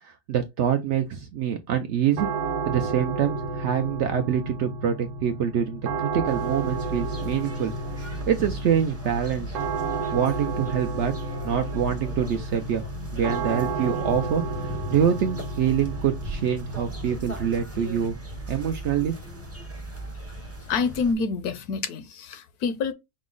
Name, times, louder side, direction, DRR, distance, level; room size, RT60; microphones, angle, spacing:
voice 1, 0.0-2.3 2.7-7.7 8.3-9.6 10.1-11.1 11.4-12.8 13.1-18.2 18.5-19.3, right 8 dB, 80° right, 0.6 m, -25 dB
sound 1, 2.2-21.1, right 3 dB, 60° right, 1.0 m, -33 dB
People near the river, 6.3-21.1, right 1 dB, 20° right, 0.4 m, -38 dB
voice 2, 20.7-22.9, left 5 dB, 75° left, 1.1 m, -27 dB
5.2 x 2.0 x 3.7 m
omnidirectional pair, 1.7 m